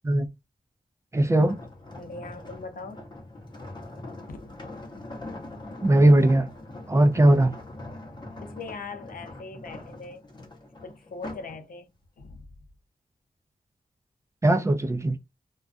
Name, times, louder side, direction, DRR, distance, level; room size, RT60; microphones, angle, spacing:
voice 1, 1.1-1.6 5.8-6.5 6.9-7.5 14.4-15.2, right 1 dB, 20° right, 0.3 m, -19 dB
sound 1, 1.4-11.6 12.0-12.3, left 2 dB, 30° left, 0.7 m, -42 dB
voice 2, 1.9-3.0 4.3-4.5 8.4-10.2 10.8-11.9 12.2-12.5, left 3 dB, 70° left, 0.5 m, -40 dB
2.3 x 2.2 x 2.4 m
wide cardioid pair, 145°, 15 cm